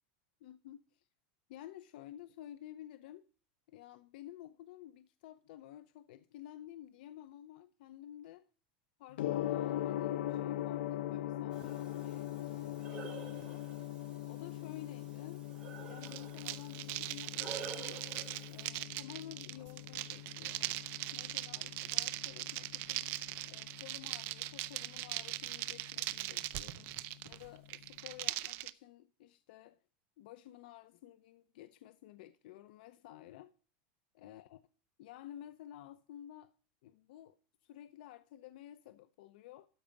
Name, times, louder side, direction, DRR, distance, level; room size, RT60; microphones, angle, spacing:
voice 1, 0.4-1.1 1.5-3.2 3.7-8.4 9.0-13.6 14.3-15.4 15.7-18.0 18.5-20.8 21.1-23.1 23.4-29.8 30.2-33.5 34.2-34.6 35.0-36.5 36.8-37.4 37.6-39.7, left 12 dB, 65° left, 0.7 m, -52 dB
Gong, 9.1-28.2, left 13 dB, 85° left, 1.0 m, -42 dB
Breathing, 11.5-18.6, right 5 dB, 20° right, 3.7 m, -50 dB
sound 1, 16.0-28.7, right 18 dB, 45° right, 0.6 m, -40 dB
13.0 x 5.0 x 7.0 m
supercardioid pair, 160°, 5 cm